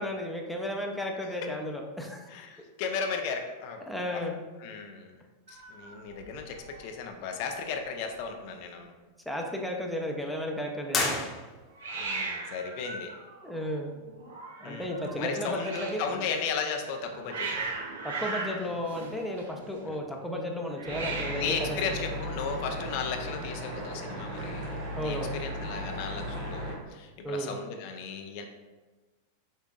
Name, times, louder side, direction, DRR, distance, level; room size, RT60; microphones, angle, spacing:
voice 1, 0.0-2.3 3.9-4.4 9.3-11.2 13.4-13.9 14.6-16.2 18.0-22.1 25.0-25.3 27.2-27.6, equal, ahead, 0 dB, 0.7 m, -34 dB
voice 2, 2.3-3.8 4.1-4.2 4.6-5.2 5.5-8.9 12.0-13.1 14.6-14.9 15.2-17.7 19.9-20.0 21.3-28.5, left 5 dB, 55° left, 4 dB, 0.5 m, -35 dB
Hiss, 5.5-6.8 7.1-7.5 7.8-7.9 8.1-8.8 11.8-16.1 16.8-19.8 20.7-21.7, right 3 dB, 75° right, 0.6 m, -38 dB
sound 1, 10.9-11.9, left 3 dB, 25° left, 0.9 m, -31 dB
sound 2, 20.9-26.8, equal, 55° right, 1.4 m, -36 dB
5.3 x 3.6 x 2.4 m, 1.3 s
hypercardioid pair, 100°, 0 cm